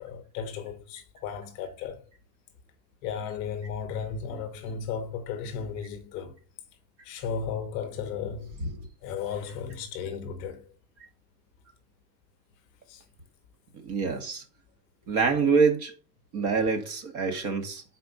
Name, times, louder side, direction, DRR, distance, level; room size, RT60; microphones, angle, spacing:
voice 1, 0.0-2.0 3.0-6.4 7.0-8.5 9.0-10.7 12.9-13.0, left 6 dB, 35° left, 0.9 m, -35 dB
voice 2, 13.8-14.4 15.1-15.9 16.3-17.8, right 5 dB, 35° right, 1.5 m, -25 dB
5.1 x 4.4 x 5.2 m
supercardioid pair, 150°, 49 cm